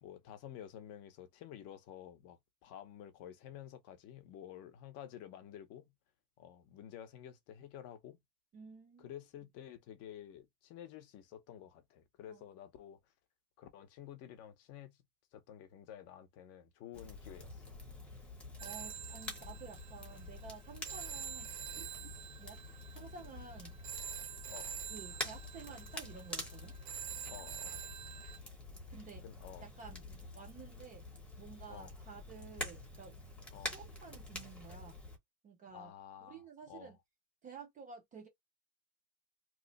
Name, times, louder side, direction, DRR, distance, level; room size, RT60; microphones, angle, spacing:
voice 1, 0.0-5.9 6.4-8.2 9.0-13.0 13.6-15.0 15.3-17.8 24.5-24.7 27.3-27.8 29.2-30.2 31.7-31.9 33.5-33.8 35.7-36.9, left 10 dB, 35° left, 0.7 m, -51 dB
voice 2, 8.5-9.1 12.3-12.4 18.6-22.1 22.4-22.6 22.9-23.7 24.9-26.7 28.9-29.2 29.6-30.0 30.4-31.0 31.4-33.2 33.5-35.0 35.4-35.9 36.2-37.0 37.4-38.3, right 5 dB, 20° right, 0.4 m, -52 dB
Crackle, 16.9-35.2, left 2 dB, 5° left, 0.8 m, -47 dB
Telephone, 18.6-28.4, right 9 dB, 80° right, 1.1 m, -47 dB
3.0 x 2.0 x 3.9 m
supercardioid pair, 160°, 42 cm